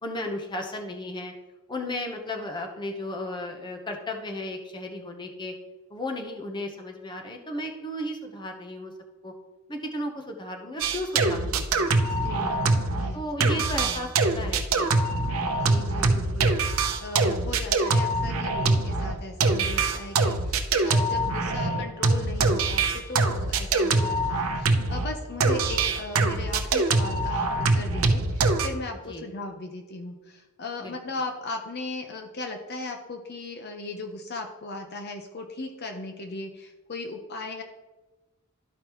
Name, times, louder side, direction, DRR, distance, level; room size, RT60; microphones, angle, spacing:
voice 1, 0.0-1.3 1.7-5.5 5.9-8.9 9.2-9.3 9.7-12.0 13.1-14.9 29.1-29.3 30.8-31.0, left 1 dB, 20° left, 3 dB, 0.8 m, -34 dB
sound 1, 10.8-13.1 13.4-25.1 25.4-28.7, right 3 dB, 70° right, 0.7 m, -24 dB
voice 2, 12.2-14.1 15.5-16.8 17.0-37.6, left 2 dB, 45° left, 4 dB, 0.7 m, -37 dB
12.5 x 5.1 x 3.0 m, 1.2 s
head